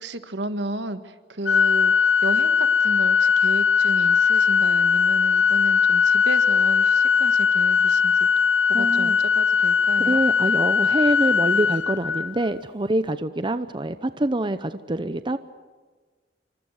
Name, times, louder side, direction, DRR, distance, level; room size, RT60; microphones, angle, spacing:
voice 1, 0.0-1.9 2.2-8.3 8.7-10.2, right 2 dB, 70° right, 10 dB, 1.6 m, -33 dB
Organ, 1.5-12.5, left 6 dB, 80° left, 0.9 m, -20 dB
voice 2, 8.7-9.2 10.0-15.4, right 1 dB, 25° right, 11 dB, 0.7 m, -25 dB
27.5 x 25.5 x 6.6 m, 1.4 s
head